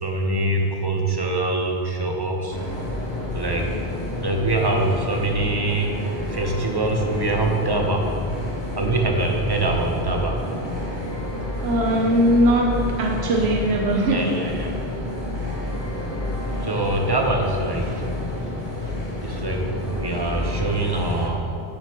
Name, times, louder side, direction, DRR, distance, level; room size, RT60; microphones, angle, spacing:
voice 1, 0.0-2.6 3.3-3.7 4.2-6.0 6.3-8.1 8.8-10.4 14.1-14.7 16.6-18.0 18.8-18.9 19.2-21.4, right 2 dB, 25° right, 1 dB, 1.0 m, -24 dB
sound 1, 2.5-21.3, left 1 dB, 50° left, 1.9 m, -29 dB
voice 2, 11.6-14.3, right 1 dB, 90° right, 0 dB, 1.1 m, -20 dB
15.0 x 6.6 x 3.1 m, 2.6 s
omnidirectional pair, 1.1 m